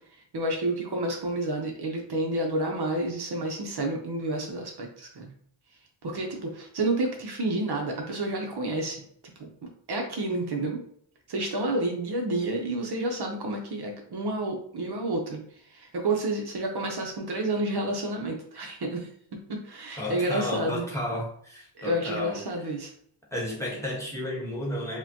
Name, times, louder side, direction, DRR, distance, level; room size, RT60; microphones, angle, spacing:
voice 1, 0.3-5.3 6.0-9.0 9.4-9.5 9.9-10.8 11.3-15.4 15.7-19.1 19.5-20.9 21.8-22.9, right 2 dB, 55° right, 0.8 m, -30 dB
voice 2, 20.0-22.4 23.3-25.0, left 1 dB, 5° left, 1.1 m, -32 dB
4.8 x 2.2 x 2.8 m
wide cardioid pair, 95°, 46 cm